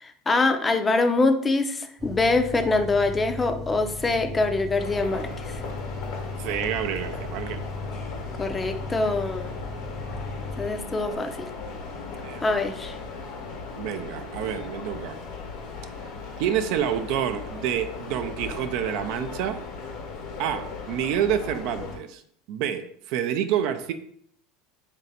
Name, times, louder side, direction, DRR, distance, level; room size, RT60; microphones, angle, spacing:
voice 1, 0.0-5.6 8.4-9.5 10.6-11.5 12.4-13.0, left 3 dB, 20° left, 7 dB, 0.5 m, -24 dB
sound 1, 2.0-10.7, left 3 dB, 30° right, 0.7 m, -37 dB
sound 2, 4.8-22.0, left 4 dB, 75° left, 1.1 m, -37 dB
voice 2, 6.4-7.7 12.2-12.4 13.8-15.2 16.4-19.6 20.4-22.2 22.5-23.9, right 9 dB, 65° right, 9 dB, 0.4 m, -28 dB
3.2 x 2.6 x 3.9 m, 0.63 s
supercardioid pair, 100°, 0 cm